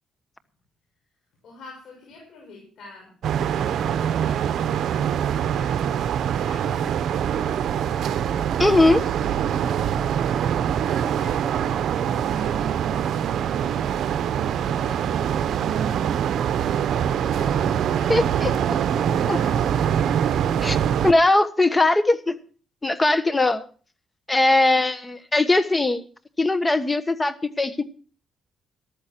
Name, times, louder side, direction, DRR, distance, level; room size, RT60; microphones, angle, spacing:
voice 1, 1.4-3.1 3.4-5.9 6.3-7.8 8.3-9.3 9.7-10.1 10.7-14.2 14.6-16.4 17.1-19.8 24.7-24.8, left 3 dB, 70° left, -1 dB, 6.2 m, -46 dB
sound 1, 3.2-21.1, right 9 dB, 70° right, 0.8 m, -24 dB
voice 2, 8.6-9.0 18.1-18.5 19.3-19.4 20.6-20.8 21.0-22.4 22.8-23.6 24.3-26.0 26.4-27.8, left 2 dB, 20° left, 12 dB, 1.3 m, -20 dB
14.0 x 13.0 x 4.5 m, 0.40 s
cardioid pair, 90°, 0 cm